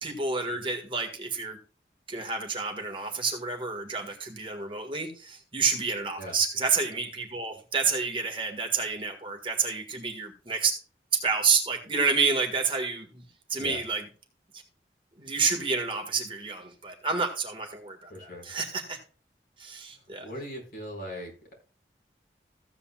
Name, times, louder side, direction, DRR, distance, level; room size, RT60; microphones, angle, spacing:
voice 1, 0.0-1.6 2.1-10.8 11.1-13.2 13.5-14.0 14.5-14.6 15.2-19.0 19.6-20.3, right 4 dB, 30° right, 3 dB, 1.7 m, -29 dB
voice 2, 18.1-18.5 20.2-21.5, equal, 55° left, 0 dB, 4.9 m, -39 dB
15.0 x 8.3 x 2.3 m, 0.37 s
head